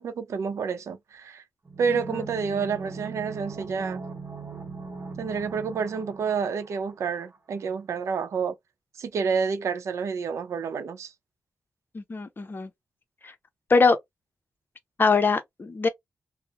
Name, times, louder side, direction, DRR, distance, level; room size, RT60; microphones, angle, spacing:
voice 1, 0.0-1.4 1.8-4.0 5.2-8.5 9.0-11.1, right 6 dB, 90° right, 0.5 m, -29 dB
sound 1, 1.7-7.4 7.6-7.7, right 4 dB, 45° right, 0.7 m, -40 dB
voice 2, 1.9-2.3 11.9-12.7 13.2-13.3 13.7-14.0 15.0-15.9, left 4 dB, 45° left, 0.6 m, -23 dB
2.7 x 2.0 x 2.4 m
cardioid pair, 60°, 5 cm